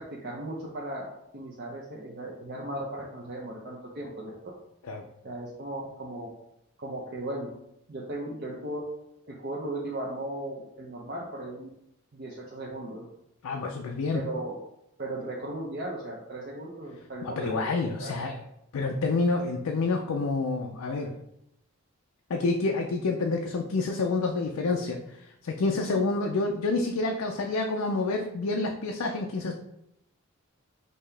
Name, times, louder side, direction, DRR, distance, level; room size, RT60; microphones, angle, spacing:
voice 1, 0.1-1.1 1.3-4.3 5.2-6.3 6.8-7.5 7.9-8.8 9.3-11.7 12.1-13.0 14.1-14.5 15.0-17.6 18.0-18.2, right 1 dB, 45° right, -4 dB, 0.6 m, -36 dB
voice 2, 13.4-14.2 17.2-18.4 18.7-21.1 22.3-25.2 25.4-29.5, left 3 dB, 90° left, 2 dB, 0.5 m, -28 dB
5.3 x 2.8 x 3.3 m, 0.81 s
head